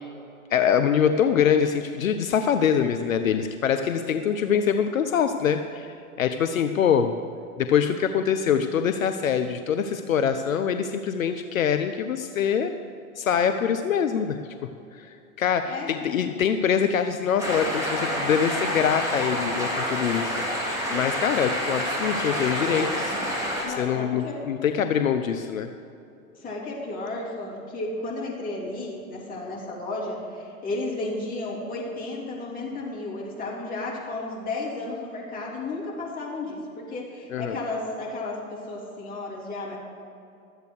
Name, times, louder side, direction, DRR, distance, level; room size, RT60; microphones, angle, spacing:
voice 1, 0.5-7.1 7.6-12.7 13.2-14.4 14.9-23.2 23.8-25.7 37.3-37.6, left 8 dB, 70° left, 8 dB, 0.7 m, -24 dB
sound 1, 17.4-23.6, equal, 10° right, 3.4 m, -28 dB
voice 2, 23.6-24.4 26.3-39.8, left 2 dB, 20° left, -4 dB, 3.2 m, -33 dB
12.5 x 8.2 x 6.3 m, 2.6 s
figure-of-eight pair, 100°, 42 cm